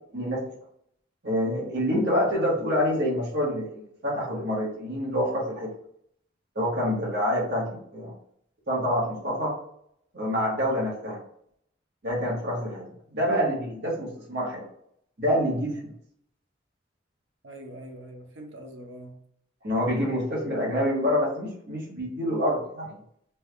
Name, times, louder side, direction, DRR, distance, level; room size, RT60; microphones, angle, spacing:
voice 1, 1.2-5.7 6.5-8.1 8.7-9.5 10.1-11.2 12.0-12.8 13.1-14.7 15.2-15.9 19.6-23.0, equal, 55° right, -5 dB, 1.2 m, -27 dB
voice 2, 17.4-19.2 19.9-20.0, right 1 dB, 75° right, 2 dB, 0.7 m, -44 dB
3.4 x 2.3 x 3.2 m, 0.69 s
head